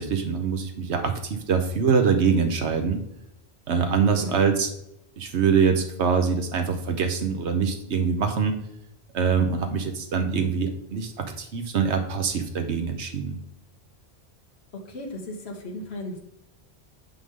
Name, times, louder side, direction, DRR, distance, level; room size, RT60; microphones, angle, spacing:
voice 1, 0.0-3.0 3.7-4.7 5.2-8.6 9.1-13.4, right 6 dB, 90° right, 6 dB, 1.2 m, -24 dB
voice 2, 14.7-16.2, left 1 dB, 70° left, 0 dB, 1.5 m, -35 dB
9.5 x 5.4 x 3.7 m, 0.77 s
omnidirectional pair, 1.1 m